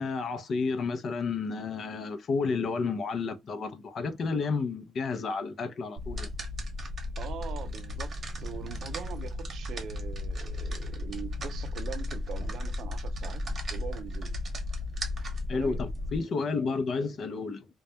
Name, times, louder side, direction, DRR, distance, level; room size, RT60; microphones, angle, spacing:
voice 1, 0.0-6.3 15.5-17.7, left 4 dB, 55° left, 0.5 m, -31 dB
sound 1, 6.0-16.2, left 1 dB, 45° right, 0.9 m, -35 dB
voice 2, 7.2-14.4 15.5-15.8, right 8 dB, 70° right, 0.4 m, -42 dB
2.2 x 2.1 x 2.6 m
cardioid pair, 90°, 0 cm